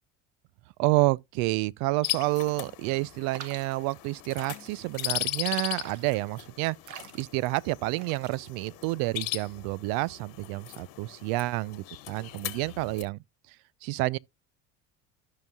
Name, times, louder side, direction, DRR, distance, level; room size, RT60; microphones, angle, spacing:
voice 1, 0.8-6.8 7.1-13.2 13.8-14.2, right 21 dB, 75° right, 0.5 m, -29 dB
sound 1, 2.0-13.0, left 17 dB, 75° left, 1.4 m, -38 dB
sound 2, 3.3-9.3, right 7 dB, 55° right, 1.4 m, -47 dB
13.5 x 5.6 x 2.2 m
supercardioid pair, 80°, 36 cm